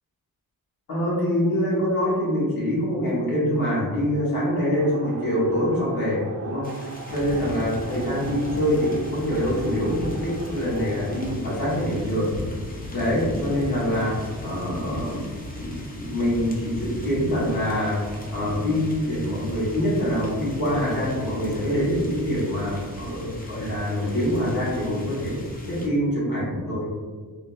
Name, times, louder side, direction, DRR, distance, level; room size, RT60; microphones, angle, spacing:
voice 1, 0.9-12.3 12.9-15.2 15.6-25.4 25.7-26.9, equal, 80° left, -7 dB, 1.4 m, -25 dB
sound 1, 4.7-11.3, right 4 dB, 35° right, 0.4 m, -41 dB
sound 2, 6.6-25.9, left 1 dB, 25° left, 0.6 m, -36 dB
3.7 x 2.6 x 2.6 m, 1.5 s
wide cardioid pair, 120°, 34 cm